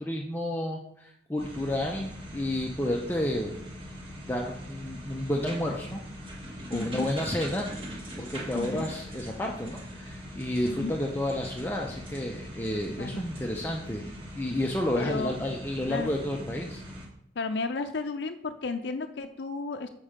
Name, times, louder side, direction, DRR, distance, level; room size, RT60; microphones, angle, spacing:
voice 1, 0.0-3.5 4.3-6.0 6.7-7.7 8.2-16.8, left 1 dB, 10° left, -1 dB, 0.6 m, -31 dB
sound 1, 1.4-17.1, equal, 30° right, 1.4 m, -41 dB
voice 2, 6.7-7.1 8.5-8.9 10.6-10.9 13.0-13.2 15.0-15.4 15.9-16.1 17.4-19.9, left 3 dB, 75° left, 6 dB, 0.5 m, -33 dB
7.4 x 5.3 x 5.0 m, 0.73 s
head